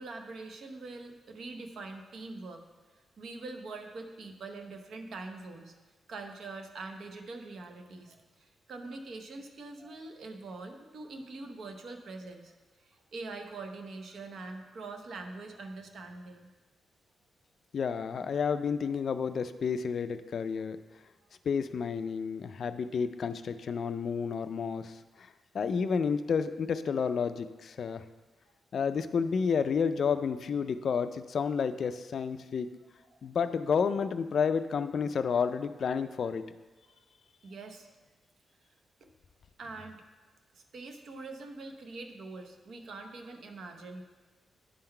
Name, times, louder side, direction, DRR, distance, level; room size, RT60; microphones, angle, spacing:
voice 1, 0.0-2.6 3.2-5.7 6.1-12.5 12.8-16.5 33.1-33.3 36.9-37.0 37.4-37.9 39.6-40.0 40.5-44.0, right 3 dB, 55° right, 5 dB, 0.7 m, -44 dB
voice 2, 17.7-20.8 21.5-25.0 25.5-28.0 28.7-32.7 33.2-36.4, left 6 dB, 50° left, 10 dB, 0.3 m, -30 dB
9.8 x 3.9 x 4.4 m, 1.3 s
wide cardioid pair, 160°, 0 cm